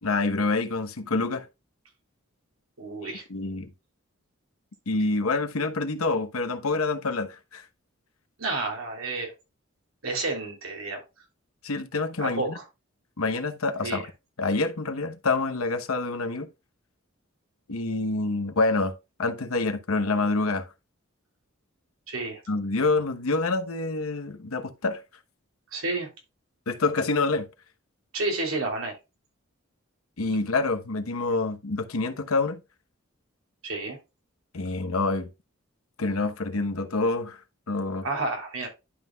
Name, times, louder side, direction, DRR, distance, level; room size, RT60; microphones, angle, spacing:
voice 1, 0.0-1.5 3.0-3.7 4.9-7.6 11.6-12.6 13.2-14.1 14.4-16.5 17.7-18.9 19.2-20.6 22.5-25.0 26.7-27.5 30.2-32.6 34.5-35.3 36.0-37.4 37.7-38.0, left 3 dB, 90° left, 1.0 m, -27 dB
voice 2, 2.8-3.2 8.4-9.3 10.0-11.0 12.2-12.6 13.8-14.0 22.1-22.4 25.7-26.1 28.1-28.9 33.6-34.0 38.0-38.7, right 2 dB, 80° right, 3.1 m, -30 dB
11.5 x 5.7 x 2.3 m
head